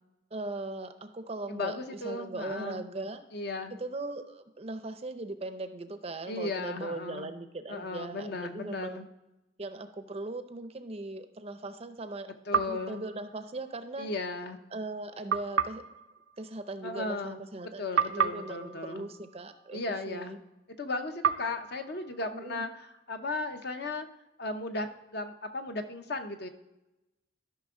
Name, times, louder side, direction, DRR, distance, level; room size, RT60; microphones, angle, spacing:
voice 1, 0.3-3.2 3.7-9.1 9.6-12.3 12.7-14.1 14.7-15.8 16.4-20.4 22.3-22.7, right 2 dB, 30° right, 10 dB, 0.5 m, -39 dB
voice 2, 1.5-2.8 3.3-3.7 6.3-7.3 7.7-9.1 12.5-13.0 14.0-14.6 16.8-17.4 17.8-19.1 19.7-20.4 20.8-24.1 24.4-26.5, left 2 dB, 55° left, 7 dB, 0.8 m, -36 dB
sound 1, 12.5-13.9 15.3-17.6 17.9-20.2 21.2-23.1, right 7 dB, 85° right, 0.5 m, -34 dB
13.0 x 5.9 x 3.7 m, 0.97 s
head